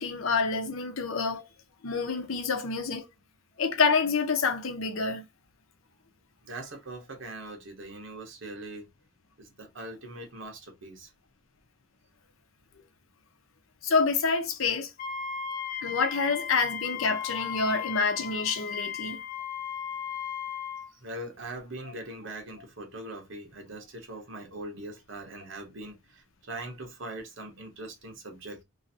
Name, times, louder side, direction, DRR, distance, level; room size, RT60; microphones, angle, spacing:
voice 1, 0.0-1.5 1.8-3.1 3.6-5.2 13.8-14.9 15.8-19.2, left 4 dB, 90° left, 0.7 m, -27 dB
voice 2, 6.4-8.9 9.4-11.1 20.9-28.6, right 1 dB, 75° right, 1.2 m, -41 dB
Wind instrument woodwind instrument, 15.0-20.9, left 8 dB, 40° left, 0.5 m, -36 dB
3.1 x 2.6 x 2.6 m
head